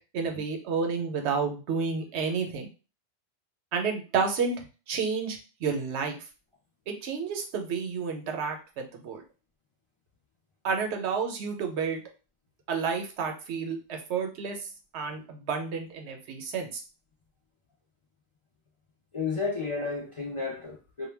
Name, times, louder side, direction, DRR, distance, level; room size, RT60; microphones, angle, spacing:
voice 1, 0.1-2.7 3.7-6.2 6.9-9.2 10.6-12.0 12.7-14.6 14.9-16.8, right 5 dB, 85° right, 0.9 m, -30 dB
voice 2, 19.1-21.1, left 4 dB, 50° left, 0.4 m, -32 dB
2.2 x 2.1 x 3.2 m
omnidirectional pair, 1.1 m